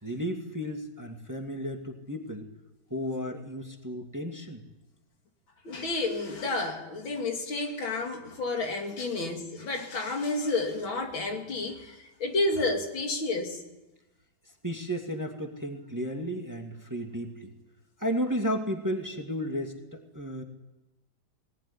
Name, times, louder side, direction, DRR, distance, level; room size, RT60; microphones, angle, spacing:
voice 1, 0.0-2.5 2.9-4.6 9.2-9.3 14.6-17.5 18.0-20.4, equal, 10° right, 2.0 m, -33 dB
voice 2, 5.6-13.6, left 2 dB, 80° left, 3.3 m, -30 dB
20.0 x 18.5 x 10.0 m
omnidirectional pair, 2.1 m